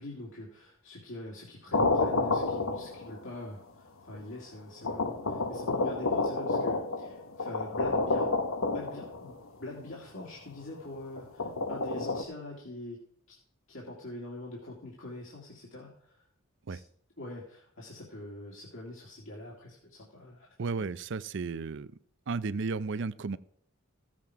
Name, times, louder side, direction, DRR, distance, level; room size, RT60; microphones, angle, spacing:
voice 1, 0.0-8.3 8.6-13.0 13.3-13.4 13.7-16.2 16.7-16.8 17.2-20.5, left 1 dB, 65° left, -4 dB, 2.4 m, -44 dB
sound 1, 1.7-3.3 4.1-4.2 4.8-9.4 11.2-12.2, left 3 dB, 85° left, 1.1 m, -30 dB
voice 2, 20.6-21.9 22.3-23.4, right 4 dB, 60° right, 16 dB, 0.5 m, -33 dB
15.5 x 7.4 x 4.7 m, 0.62 s
head